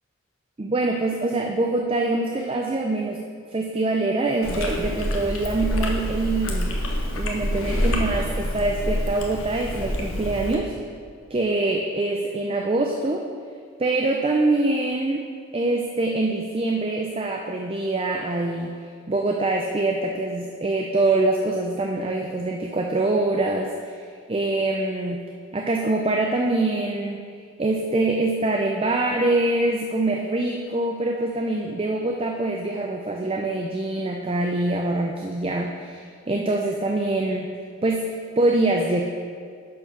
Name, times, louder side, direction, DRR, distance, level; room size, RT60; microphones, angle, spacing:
voice 1, 0.6-6.7 7.1-10.7 11.3-13.3 13.8-15.3 15.5-18.7 19.1-24.0 24.3-25.2 25.5-27.3 27.6-37.5 37.8-39.1, right 2 dB, 25° right, 1 dB, 0.5 m, -24 dB
Chewing mastication, 4.4-10.6, equal, 75° left, 1.2 m, -27 dB
10.5 x 4.6 x 5.9 m, 2.2 s
head